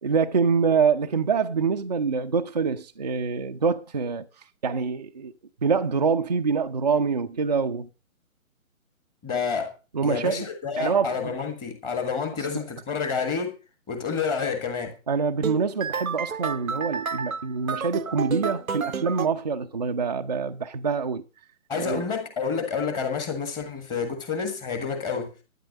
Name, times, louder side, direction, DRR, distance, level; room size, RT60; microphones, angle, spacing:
voice 1, 0.0-4.2 4.6-5.3 5.6-7.9 9.9-10.4 10.8-11.3 15.1-21.2 21.8-22.0, right 5 dB, 30° right, 0.5 m, -25 dB
voice 2, 9.2-9.7 10.0-13.6 13.9-14.9 21.7-25.3, left 5 dB, 10° left, 1.5 m, -29 dB
sound 1, 15.4-19.3, right 6 dB, 75° right, 0.8 m, -30 dB
12.0 x 9.8 x 5.2 m
figure-of-eight pair, 140°, 42 cm